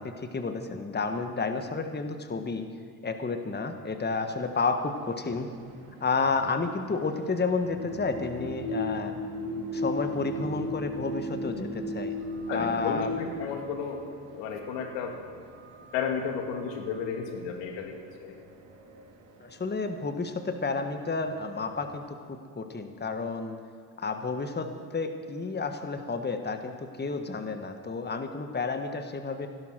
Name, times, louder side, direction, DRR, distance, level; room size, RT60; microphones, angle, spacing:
voice 1, 0.0-2.7 3.0-5.5 6.0-9.1 9.7-12.1 12.5-13.1 19.4-23.6 24.0-29.5, left 4 dB, 25° left, 7 dB, 1.5 m, -31 dB
sound 1, 4.5-22.0, left 1 dB, 70° right, 3.0 m, -38 dB
voice 2, 12.5-14.0 14.3-15.2 15.9-17.9 18.2-18.4, left 6 dB, 80° left, 4 dB, 2.0 m, -33 dB
16.0 x 12.0 x 6.2 m, 2.2 s
hypercardioid pair, 60°, 44 cm